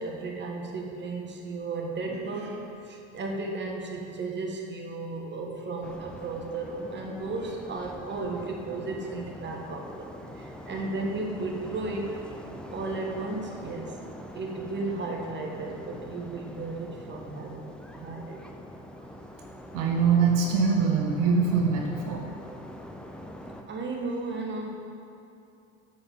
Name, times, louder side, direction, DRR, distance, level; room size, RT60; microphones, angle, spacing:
voice 1, 0.0-12.3 12.7-14.0 14.3-18.4 23.7-24.7, right 3 dB, 30° right, 0 dB, 1.4 m, -34 dB
sound 1, 5.8-23.6, left 1 dB, 5° left, 0.6 m, -44 dB
voice 2, 19.7-22.2, right 5 dB, 60° right, 0 dB, 1.1 m, -23 dB
7.1 x 5.6 x 5.4 m, 2.7 s
hypercardioid pair, 85°, 36 cm